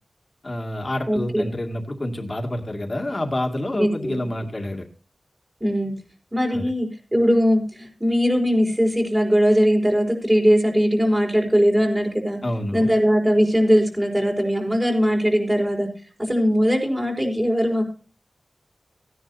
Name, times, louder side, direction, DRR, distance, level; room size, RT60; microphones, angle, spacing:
voice 1, 0.4-4.9 6.5-6.7 12.4-12.9, left 1 dB, 35° left, 2 dB, 2.2 m, -28 dB
voice 2, 1.1-1.5 3.7-4.3 5.6-5.9 6.3-12.4 12.7-15.9 16.2-17.8, equal, 20° right, 0 dB, 4.5 m, -20 dB
16.5 x 10.0 x 2.7 m, 0.37 s
wide cardioid pair, 70°, 0 cm